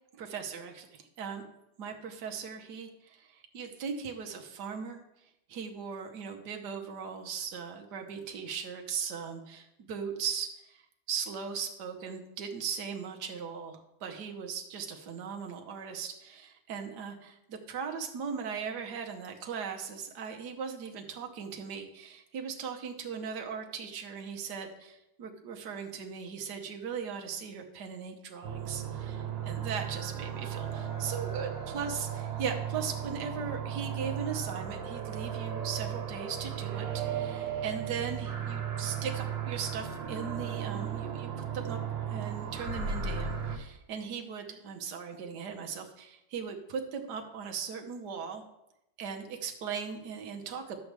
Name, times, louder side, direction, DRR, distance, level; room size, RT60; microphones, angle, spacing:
voice 1, 0.1-1.4 1.8-5.0 5.5-10.8 11.1-41.8 42.1-48.4 49.0-50.8, right 6 dB, 65° right, 3 dB, 1.6 m, -38 dB
Robot Torture (Loopable Soundscape), 28.4-43.6, right 8 dB, 80° right, 1.7 m, -35 dB
12.5 x 7.7 x 3.4 m, 0.85 s
omnidirectional pair, 2.0 m